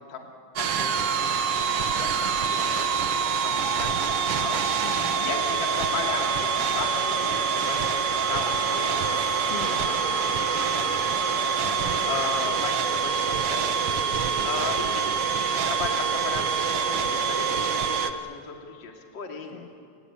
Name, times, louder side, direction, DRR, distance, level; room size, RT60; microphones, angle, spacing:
voice 1, 0.6-1.4 2.0-2.1 2.6-4.6 5.2-8.0 8.3-9.4 9.9-10.8 11.2-11.4 12.1-13.9 14.4-15.0 15.4-16.4 16.7-18.5 18.8-19.6, left 5 dB, 35° left, 1 dB, 2.9 m, -36 dB
sound 1, 0.6-18.1, right 6 dB, 75° right, 1.3 m, -26 dB
sound 2, 2.9-12.4, right 2 dB, 45° right, 4.6 m, -37 dB
voice 2, 4.8-5.3 9.1-9.9 11.7-12.1 19.5-19.8, left 7 dB, 85° left, 6 dB, 1.3 m, -41 dB
30.0 x 20.5 x 8.6 m, 2.4 s
omnidirectional pair, 4.1 m